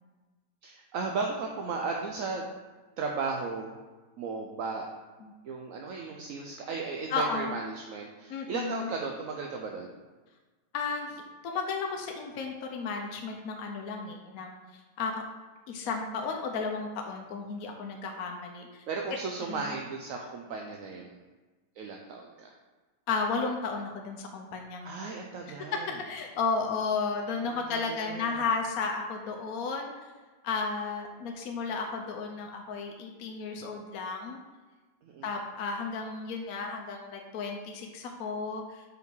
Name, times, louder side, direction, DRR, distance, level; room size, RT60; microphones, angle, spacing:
voice 1, 0.6-2.5 3.0-3.8 4.2-4.9 5.4-10.0 18.9-21.2 21.8-22.5 24.8-26.0 27.5-28.4 35.0-35.3, right 4 dB, 65° right, 1 dB, 0.8 m, -35 dB
voice 2, 7.1-7.6 8.3-8.9 10.7-15.2 15.7-18.8 19.5-19.6 23.1-25.1 26.0-29.9 30.4-34.4 35.2-38.8, left 4 dB, 65° left, 2 dB, 1.0 m, -33 dB
5.2 x 5.0 x 4.6 m, 1.3 s
omnidirectional pair, 1.9 m